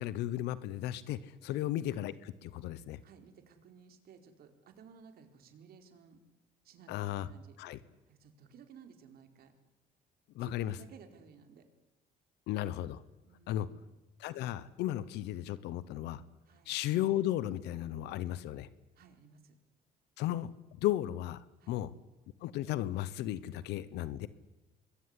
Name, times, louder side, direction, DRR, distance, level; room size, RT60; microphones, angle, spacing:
voice 1, 0.0-3.0 6.9-7.3 7.6-7.8 10.3-10.7 12.5-13.0 13.5-13.7 14.2-16.2 16.7-18.7 20.2-21.9 22.4-24.3, left 13 dB, 85° left, 17 dB, 1.1 m, -35 dB
voice 2, 3.0-6.2 6.6-7.6 8.1-9.5 10.4-11.7 13.2-13.8 16.5-16.7 18.9-19.6 21.6-21.8, right 6 dB, 65° right, 7 dB, 4.4 m, -57 dB
27.0 x 21.5 x 9.8 m, 1.0 s
cardioid pair, 110°, 17 cm